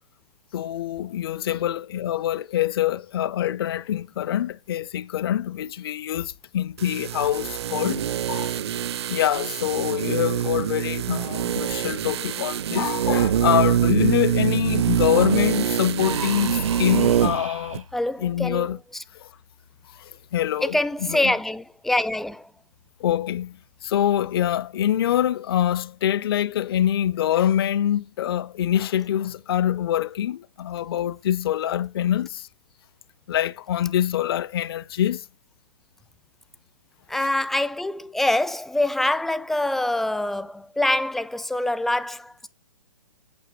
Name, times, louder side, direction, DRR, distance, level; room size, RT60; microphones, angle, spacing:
voice 1, 0.5-8.5 9.1-17.8 18.2-18.8 20.3-20.8 21.1-21.3 23.0-32.5 33.3-35.2, left 11 dB, 45° left, 0.7 m, -25 dB
sound 1, 6.8-17.4 17.7-17.8, right 10 dB, 55° right, 0.8 m, -24 dB
Human voice, 16.0-17.8, right 4 dB, 80° right, 2.2 m, -34 dB
voice 2, 17.9-19.0 20.6-22.5 37.1-42.5, left 1 dB, ahead, 0.5 m, -25 dB
8.8 x 7.8 x 7.4 m
figure-of-eight pair, 125°, 17 cm